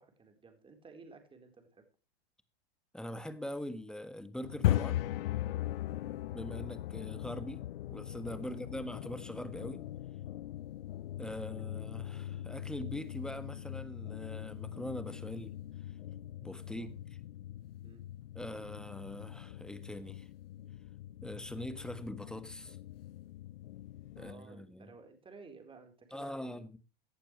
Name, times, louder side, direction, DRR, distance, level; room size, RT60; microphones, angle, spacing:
voice 1, 0.0-1.9 5.9-6.2 8.4-8.8 16.7-16.9 17.8-18.1 24.1-26.7, right 4 dB, 15° right, 4.0 m, -55 dB
voice 2, 2.9-5.0 6.3-7.6 7.9-9.8 11.2-15.6 16.4-16.9 18.3-20.3 21.2-22.8 24.2-24.9 26.1-26.8, left 1 dB, ahead, 1.5 m, -42 dB
sound 1, 4.4-24.3, left 13 dB, 70° left, 0.6 m, -39 dB
17.0 x 11.5 x 3.2 m
hypercardioid pair, 110°, 30 cm